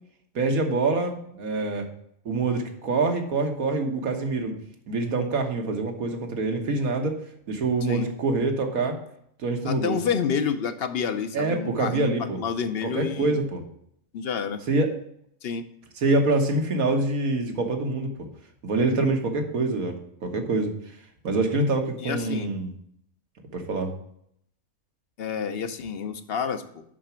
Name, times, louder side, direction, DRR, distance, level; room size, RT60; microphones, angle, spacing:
voice 1, 0.4-1.9 2.3-4.5 4.9-7.1 7.5-9.0 9.4-10.0 11.3-12.4 12.8-13.6 14.7-14.9 16.0-18.1 18.6-19.9 20.2-20.7 21.2-22.7 23.5-23.9, right 3 dB, 85° right, 4 dB, 1.8 m, -25 dB
voice 2, 9.7-13.4 14.1-14.6 15.4-15.7 22.0-22.5 25.2-26.8, left 6 dB, 55° left, 10 dB, 0.8 m, -29 dB
7.4 x 5.9 x 5.8 m, 0.71 s
omnidirectional pair, 1.5 m